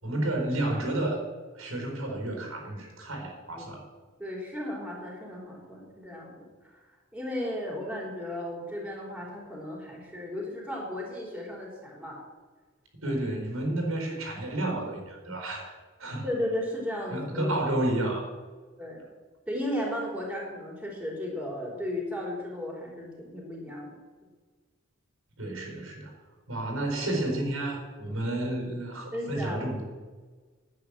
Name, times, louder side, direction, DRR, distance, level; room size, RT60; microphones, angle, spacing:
voice 1, 0.0-1.2 1.5-3.8 13.0-16.3 17.1-18.3 25.4-26.1 26.5-29.8, right 1 dB, 85° right, 1 dB, 4.5 m, -31 dB
voice 2, 4.2-6.5 7.1-12.2 16.2-17.5 18.8-19.0 19.5-24.0 29.1-29.8, left 1 dB, 5° right, -3 dB, 3.6 m, -35 dB
10.5 x 8.3 x 8.7 m, 1.4 s
head